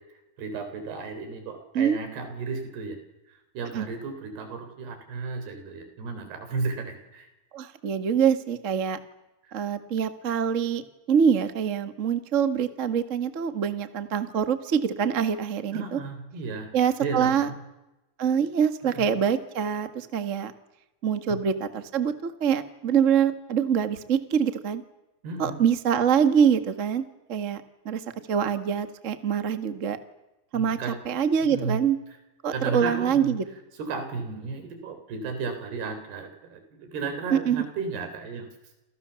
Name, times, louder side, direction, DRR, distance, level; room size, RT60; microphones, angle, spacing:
voice 1, 0.4-3.0 3.3-7.3 9.4-9.5 15.7-16.7 17.0-17.6 18.8-19.1 21.3-21.4 25.2-25.6 30.5-31.0 31.5-31.8 32.5-33.4 33.8-38.5, right 4 dB, 85° right, 7 dB, 6.0 m, -34 dB
voice 2, 7.5-9.0 9.5-10.8 11.1-16.0 16.7-17.5 18.2-20.5 21.0-24.8 25.4-28.0 28.3-30.0 30.5-30.8 31.0-32.0 32.4-33.4 37.3-37.6, right 7 dB, 70° right, 9 dB, 0.7 m, -25 dB
29.0 x 28.5 x 7.1 m, 1.0 s
omnidirectional pair, 4.5 m